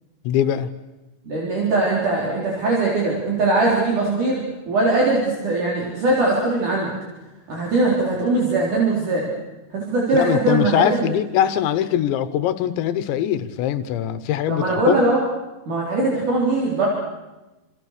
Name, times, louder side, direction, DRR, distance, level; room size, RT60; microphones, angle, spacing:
voice 1, 0.2-0.7 10.1-15.0, left 10 dB, 85° left, 12 dB, 3.4 m, -22 dB
voice 2, 1.2-6.9 7.5-9.3 9.7-10.9 14.5-15.2 15.7-16.9, right 2 dB, 45° right, -3 dB, 5.3 m, -21 dB
29.5 x 27.5 x 6.7 m, 1.1 s
omnidirectional pair, 5.1 m